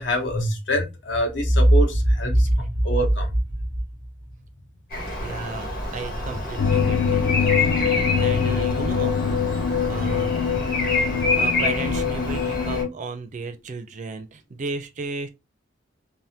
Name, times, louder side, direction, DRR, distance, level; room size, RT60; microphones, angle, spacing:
voice 1, 0.0-3.4, equal, 65° left, 0.8 m, -20 dB
Bird vocalization bird call bird song, 4.9-12.8, left 2 dB, 50° left, 1.5 m, -28 dB
voice 2, 5.2-9.4 9.9-10.4 11.3-15.3, right 3 dB, 40° right, 0.4 m, -34 dB
sound 1, 6.6-12.9, left 7 dB, 85° left, 0.3 m, -23 dB
3.3 x 2.1 x 2.7 m
head